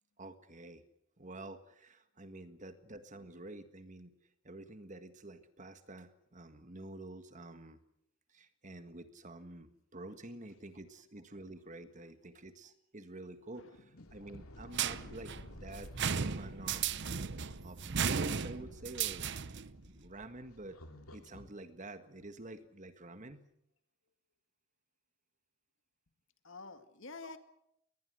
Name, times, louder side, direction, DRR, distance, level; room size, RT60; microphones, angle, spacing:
voice 1, 0.2-0.8 1.2-4.1 4.4-7.8 8.3-17.0 17.6-19.3 19.8-20.8 21.1-23.4 27.2-27.3, right 2 dB, 35° right, 10 dB, 1.6 m, -49 dB
voice 2, 13.6-14.4 26.4-27.4, left 3 dB, 60° left, 9 dB, 2.0 m, -50 dB
sound 1, 14.0-21.5, left 1 dB, 85° left, 2.8 m, -53 dB
sound 2, 14.7-19.7, right 7 dB, 55° right, 0.8 m, -35 dB
22.0 x 20.0 x 8.0 m, 0.77 s
head